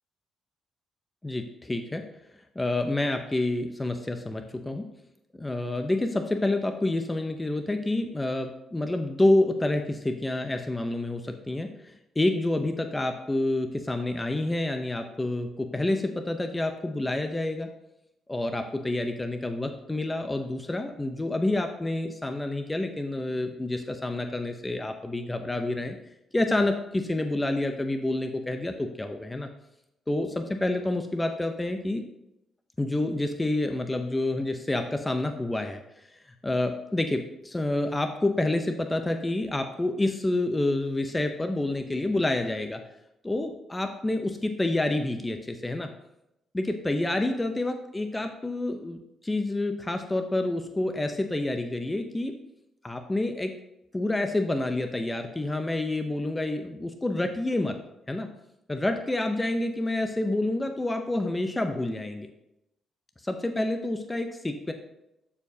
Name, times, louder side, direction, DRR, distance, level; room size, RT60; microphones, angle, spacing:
voice 1, 1.2-2.1 2.6-4.8 5.4-11.7 12.2-17.7 18.3-26.0 26.3-29.5 30.1-32.0 32.8-35.8 36.4-42.8 43.2-45.9 46.5-52.4 52.8-53.6 53.9-57.8 58.1-58.3 58.7-62.3 63.3-64.7, left 2 dB, 15° left, 6 dB, 0.6 m, -28 dB
12.0 x 4.6 x 2.7 m, 0.86 s
cardioid pair, 90°, 0 cm